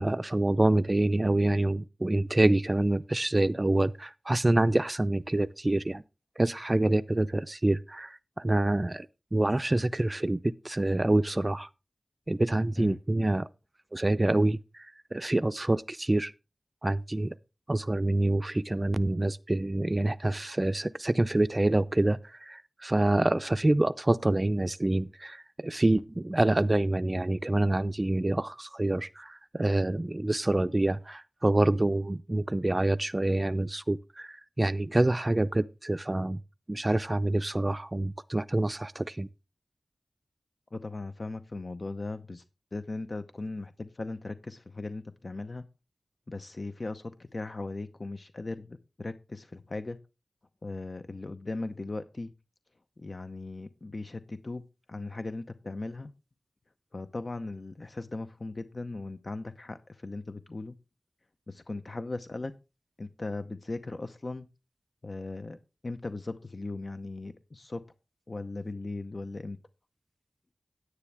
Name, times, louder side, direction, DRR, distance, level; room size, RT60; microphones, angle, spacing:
voice 1, 0.0-6.0 6.4-9.1 9.3-11.7 12.3-13.5 13.9-14.6 15.1-16.3 16.8-17.3 17.7-22.2 22.5-36.4 36.7-39.3, right 1 dB, 30° right, 0.5 m, -26 dB
voice 2, 40.7-42.4 42.7-45.6 46.3-50.0 50.6-52.3 53.0-54.6 54.9-56.1 56.9-60.7 61.5-62.5 63.0-64.5 65.0-65.6 65.8-67.8 68.3-69.6, left 2 dB, 50° left, 0.7 m, -38 dB
9.7 x 9.4 x 3.4 m
wide cardioid pair, 60°, 0 cm